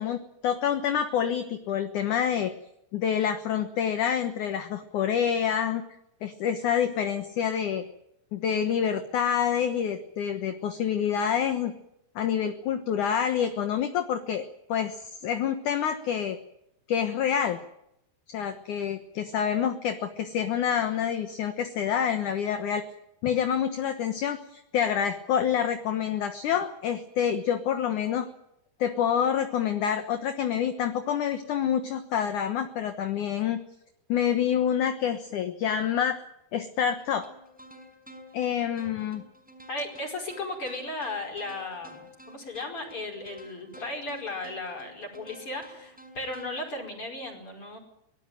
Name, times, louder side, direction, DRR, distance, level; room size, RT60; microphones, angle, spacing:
voice 1, 0.0-2.5 2.9-5.8 6.2-7.8 8.3-11.7 12.2-14.4 14.7-16.4 16.9-17.6 18.3-22.8 23.2-28.3 28.8-33.6 34.1-36.2 36.5-37.3 38.3-39.2, left 8 dB, 65° left, 8 dB, 2.2 m, -27 dB
sound 1, 37.0-46.7, left 2 dB, ahead, 5.3 m, -50 dB
voice 2, 39.7-47.8, left 2 dB, 30° left, 2 dB, 5.7 m, -36 dB
24.0 x 18.5 x 9.1 m, 0.80 s
omnidirectional pair, 4.8 m